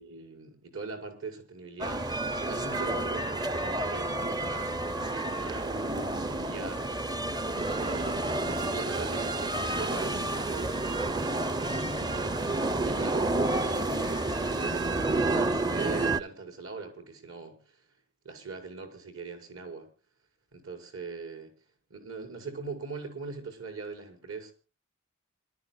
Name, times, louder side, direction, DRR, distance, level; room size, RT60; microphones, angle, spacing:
voice 1, 0.0-5.1 5.3-5.9 6.2-6.8 7.8-10.8 12.0-17.8 18.2-19.9 20.5-21.5 21.9-24.5, right 4 dB, 70° right, 6 dB, 5.5 m, -41 dB
sound 1, 1.8-16.2, right 2 dB, 20° right, 0.7 m, -30 dB
27.0 x 13.5 x 2.3 m, 0.34 s
head